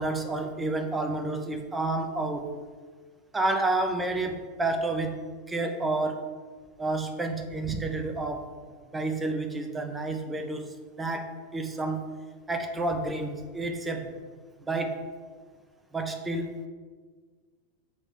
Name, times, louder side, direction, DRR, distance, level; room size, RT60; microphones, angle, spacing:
voice 1, 0.0-2.5 3.3-6.2 6.8-8.5 8.9-10.7 11.0-12.1 12.5-14.1 14.6-15.0 15.9-16.5, right 2 dB, 10° right, 5 dB, 0.7 m, -30 dB
7.6 x 2.9 x 5.7 m, 1.5 s
figure-of-eight pair, 90°, 0 cm